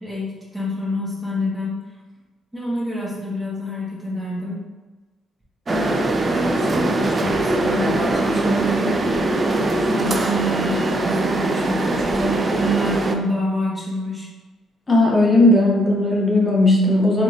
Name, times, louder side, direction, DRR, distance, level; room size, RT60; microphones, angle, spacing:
voice 1, 0.0-1.8 2.5-4.6 5.7-9.0 9.5-14.3, equal, 10° right, -6 dB, 1.3 m, -27 dB
sound 1, 5.7-13.2, right 2 dB, 35° right, 0.4 m, -21 dB
voice 2, 14.9-17.2, left 2 dB, 30° left, -4 dB, 0.8 m, -16 dB
3.6 x 3.2 x 2.6 m, 1.2 s
cardioid pair, 90°, 0 cm